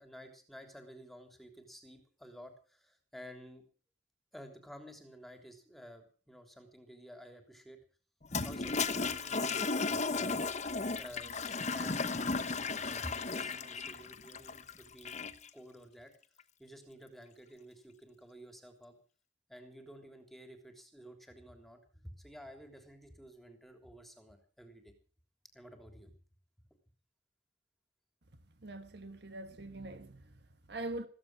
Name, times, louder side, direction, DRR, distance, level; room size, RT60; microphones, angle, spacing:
voice 1, 0.0-3.6 4.3-7.8 8.4-9.6 10.1-15.2 15.5-16.1 16.6-18.9 19.5-24.9 25.5-26.1, equal, ahead, 3.4 m, -52 dB
Toilet flush, 8.2-15.5, left 4 dB, 40° left, 1.1 m, -35 dB
voice 2, 28.6-31.1, right 2 dB, 65° right, 1.5 m, -43 dB
15.5 x 15.0 x 6.1 m
head